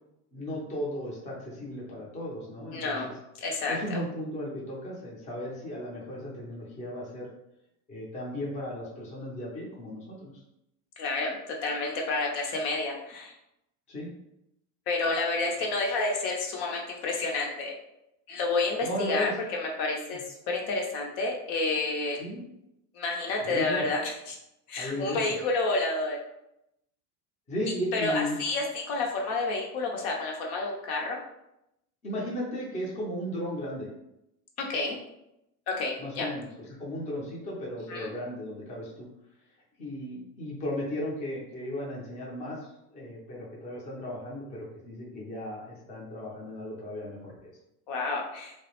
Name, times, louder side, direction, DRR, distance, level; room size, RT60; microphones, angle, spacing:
voice 1, 0.3-3.1 3.7-7.3 7.9-10.3 13.9-14.1 18.8-19.3 20.1-20.2 22.2-22.4 23.4-23.9 24.8-25.2 27.5-28.4 32.0-33.9 36.0-36.5 36.8-39.1 39.8-42.7 42.9-47.5, left 1 dB, 15° left, -5 dB, 0.5 m, -35 dB
voice 2, 2.7-3.1 3.4-4.0 11.0-13.3 14.9-17.7 18.3-20.2 20.5-22.2 22.9-24.4 24.7-26.2 27.9-31.2 34.6-35.0 35.8-36.3 37.9-38.1 47.9-48.5, left 3 dB, 60° left, 0 dB, 0.7 m, -30 dB
2.2 x 2.0 x 2.9 m, 0.83 s
supercardioid pair, 130°, 46 cm